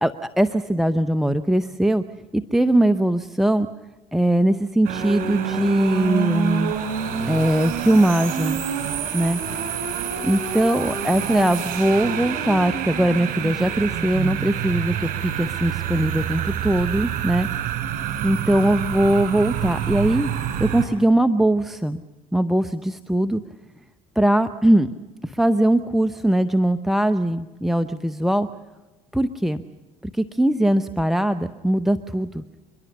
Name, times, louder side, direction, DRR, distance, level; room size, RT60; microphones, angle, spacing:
voice 1, 0.0-2.0 2.3-3.7 4.1-6.7 7.3-8.6 9.1-9.4 10.2-17.5 18.2-20.3 20.6-22.0 22.3-23.4 24.2-24.9 25.2-28.5 29.1-29.6 30.0-32.4, right 1 dB, ahead, 12 dB, 0.8 m, -21 dB
sound 1, 4.8-20.8, right 9 dB, 55° right, 4.9 m, -27 dB
28.5 x 11.5 x 9.8 m, 1.2 s
hypercardioid pair, 65°, 17 cm